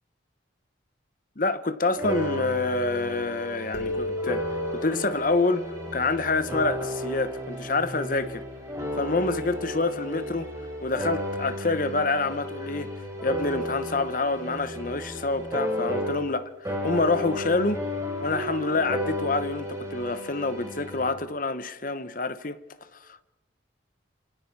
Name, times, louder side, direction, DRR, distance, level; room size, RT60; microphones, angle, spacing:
voice 1, 1.4-4.5 4.7-8.4 9.0-10.5 10.8-12.9 13.2-17.8 18.2-22.6, left 3 dB, 45° left, 1.1 m, -27 dB
sound 1, 2.0-16.4 16.7-21.1, left 1 dB, 15° right, 5.2 m, -33 dB
sound 2, 3.7-7.3, left 1 dB, 65° left, 1.5 m, -35 dB
28.5 x 27.0 x 4.8 m
head